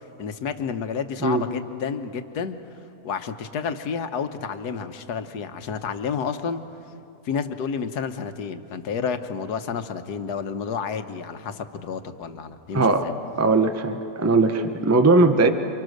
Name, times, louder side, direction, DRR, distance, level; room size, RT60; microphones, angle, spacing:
voice 1, 0.2-2.6 3.0-6.6 7.2-13.1, left 6 dB, 90° left, 9 dB, 1.6 m, -30 dB
voice 2, 12.7-13.1 13.4-15.5, right 3 dB, 15° right, 8 dB, 0.7 m, -19 dB
29.0 x 25.5 x 6.5 m, 2.8 s
omnidirectional pair, 1.6 m